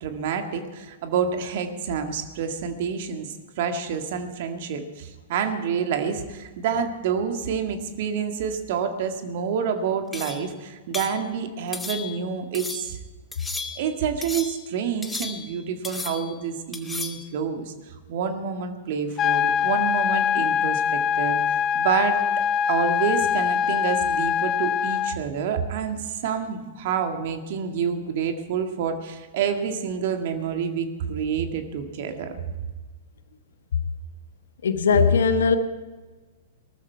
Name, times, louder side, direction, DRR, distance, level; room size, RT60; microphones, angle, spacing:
voice 1, 0.0-13.0 13.8-22.2 22.7-32.3, right 7 dB, 55° right, 6 dB, 1.9 m, -28 dB
sound 1, 10.1-10.5 10.9-11.2 11.7-12.2 12.5-12.9 13.3-13.9 14.2-14.6 15.0-15.6 15.8-16.4 16.7-17.3, left 3 dB, 10° left, 1.2 m, -34 dB
sound 2, 19.2-25.2, left 8 dB, 30° left, 0.6 m, -23 dB
voice 2, 34.6-35.6, left 5 dB, 70° left, 10 dB, 1.2 m, -19 dB
19.0 x 13.5 x 4.6 m, 1.3 s
figure-of-eight pair, 105°, 0 cm